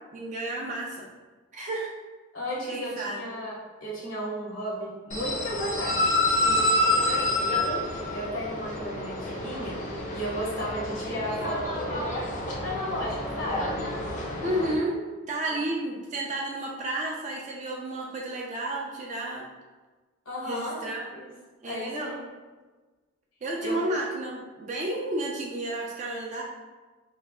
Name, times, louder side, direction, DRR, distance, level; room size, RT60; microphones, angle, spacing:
voice 1, 0.1-1.1 1.5-1.9 2.7-3.2 14.4-15.0 15.3-19.5 20.4-21.0 21.6-22.2 23.4-26.4, right 1 dB, 35° right, -3 dB, 0.4 m, -31 dB
voice 2, 2.3-3.5 3.8-6.0 6.4-7.6 8.1-9.8 10.1-12.2 12.6-13.7 15.5-15.6 20.2-20.8 21.1-21.3 21.6-22.3 23.6-23.8, equal, 70° left, -5 dB, 1.1 m, -34 dB
sound 1, 5.1-14.7, left 1 dB, 40° left, 0.5 m, -28 dB
3.3 x 2.0 x 3.5 m, 1.3 s
head